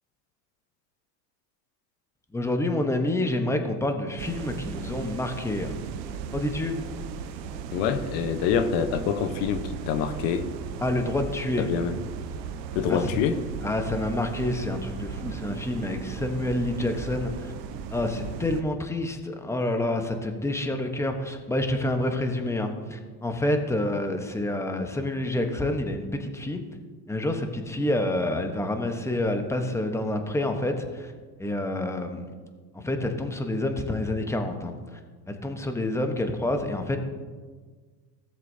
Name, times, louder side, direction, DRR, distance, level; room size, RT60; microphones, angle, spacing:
voice 1, 2.3-5.8 6.3-6.8 10.8-11.7 12.9-13.1 13.6-17.5 17.9-26.6 27.1-31.1 31.4-32.3 32.7-35.0 35.3-37.0, left 1 dB, 5° left, 5 dB, 1.0 m, -28 dB
sound 1, 4.2-18.6, right 7 dB, 80° right, 0.9 m, -37 dB
voice 2, 7.7-10.5 11.6-11.9 12.7-13.4, left 7 dB, 60° left, 10 dB, 1.0 m, -26 dB
16.5 x 7.4 x 2.7 m, 1.5 s
supercardioid pair, 110°, 50 cm